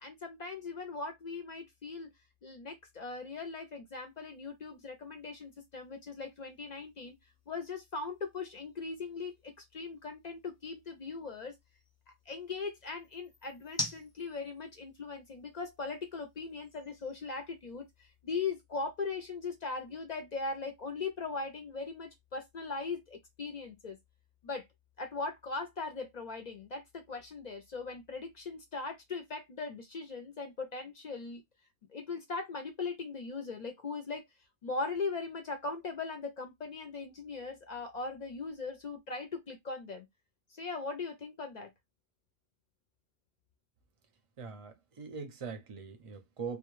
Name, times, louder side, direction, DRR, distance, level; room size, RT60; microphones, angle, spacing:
voice 1, 0.0-2.1 2.4-7.1 7.5-11.6 12.3-17.8 18.2-24.0 24.4-24.7 25.0-31.4 31.9-34.3 34.6-40.1 40.5-41.7, left 4 dB, 55° left, 0.5 m, -39 dB
sound 1, 4.0-18.2, left 1 dB, 15° left, 0.7 m, -49 dB
voice 2, 44.4-46.6, right 5 dB, 40° right, 0.5 m, -42 dB
2.2 x 2.0 x 3.0 m
omnidirectional pair, 1.1 m